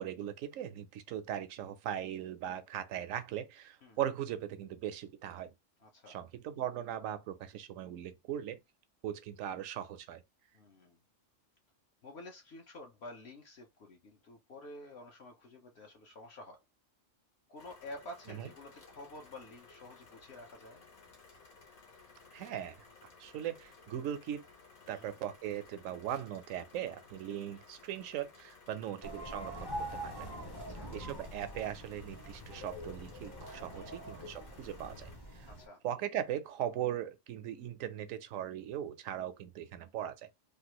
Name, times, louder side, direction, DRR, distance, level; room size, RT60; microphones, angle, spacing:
voice 1, 0.0-5.5 6.1-8.6 9.0-10.2 18.3-18.5 22.3-22.8 23.2-24.5 24.9-29.7 30.0-30.3 30.9-35.5 35.8-40.3, right 10 dB, 80° right, 1.0 m, -39 dB
voice 2, 5.8-6.2 10.5-11.0 12.0-16.6 17.5-20.8 24.9-25.2 26.8-26.9 28.7-28.8 30.5-31.0 33.7-34.0 35.5-35.8, left 1 dB, 60° left, 0.9 m, -50 dB
sound 1, 17.6-35.2, left 4 dB, 80° left, 1.6 m, -58 dB
sound 2, 29.0-35.7, right 1 dB, 25° left, 0.6 m, -44 dB
3.2 x 2.4 x 2.9 m
omnidirectional pair, 1.4 m